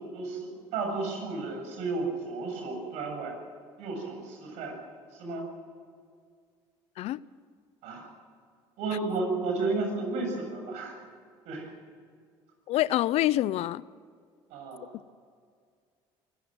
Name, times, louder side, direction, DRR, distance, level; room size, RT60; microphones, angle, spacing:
voice 1, 0.0-3.4 3.8-4.8 5.1-5.4 7.8-8.1 8.8-11.0 11.5-11.7 14.5-14.9, right 3 dB, 75° right, 3 dB, 7.3 m, -33 dB
voice 2, 12.7-13.8, left 14 dB, 65° left, 19 dB, 0.6 m, -26 dB
25.0 x 15.5 x 7.9 m, 2.1 s
supercardioid pair, 85°, 12 cm